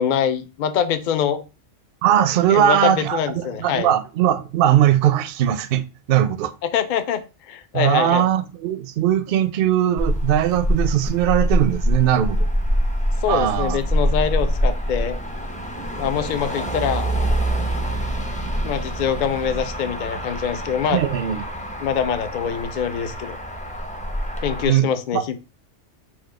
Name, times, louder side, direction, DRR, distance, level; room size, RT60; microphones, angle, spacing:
voice 1, 0.0-1.4 2.5-3.9 6.6-8.2 13.2-15.2 16.0-17.1 18.6-21.0 21.8-23.4 24.4-25.4, left 8 dB, 55° left, 0.5 m, -24 dB
voice 2, 2.0-6.5 7.7-12.5 13.3-13.8 20.9-21.4 24.7-25.2, right 11 dB, 60° right, 0.6 m, -20 dB
Motor vehicle (road), 10.0-24.7, equal, 10° left, 0.5 m, -25 dB
4.4 x 2.4 x 4.7 m
omnidirectional pair, 1.3 m